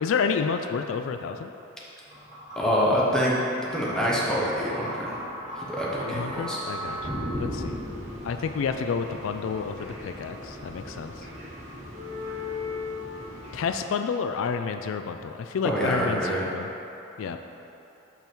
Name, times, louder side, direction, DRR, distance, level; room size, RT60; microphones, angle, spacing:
voice 1, 0.0-1.5 6.0-7.0 7.4-7.8 8.2-11.3 13.5-16.7 17.2-17.4, left 6 dB, 85° left, 7 dB, 0.3 m, -29 dB
sound 1, 2.1-13.7, left 1 dB, 35° right, 1.4 m, -37 dB
voice 2, 2.6-3.4 3.7-5.2 5.6-6.6 15.6-16.4, equal, 5° left, -6 dB, 0.9 m, -26 dB
6.0 x 5.4 x 4.5 m, 3.0 s
head